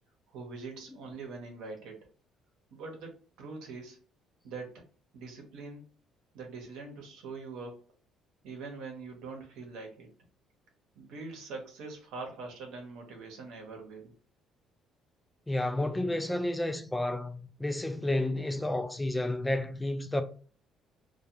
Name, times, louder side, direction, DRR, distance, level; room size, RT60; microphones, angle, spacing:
voice 1, 0.3-2.0 2.7-4.0 4.4-4.8 5.1-5.9 6.3-7.8 8.4-10.1 11.0-14.1, right 4 dB, 80° right, 0.8 m, -43 dB
voice 2, 15.5-20.2, left 1 dB, 10° left, 0.4 m, -31 dB
2.3 x 2.2 x 2.7 m
supercardioid pair, 75°, 0 cm